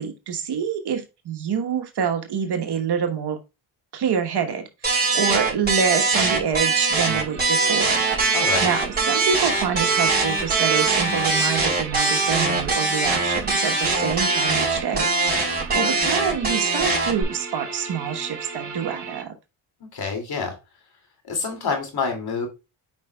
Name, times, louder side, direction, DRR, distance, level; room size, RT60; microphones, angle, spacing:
voice 1, 0.0-3.4 3.9-4.7 5.1-8.0 8.6-19.3, right 7 dB, 50° right, 5 dB, 1.2 m, -26 dB
sound 1, 4.8-17.2, right 3 dB, 20° right, 4.1 m, -22 dB
sound 2, 7.2-19.2, right 4 dB, 35° right, 3.6 m, -37 dB
voice 2, 8.3-8.7 19.9-20.5 21.3-22.5, left 5 dB, 50° left, 4 dB, 2.5 m, -27 dB
7.9 x 5.3 x 2.3 m, 0.27 s
cardioid pair, 90°, 50 cm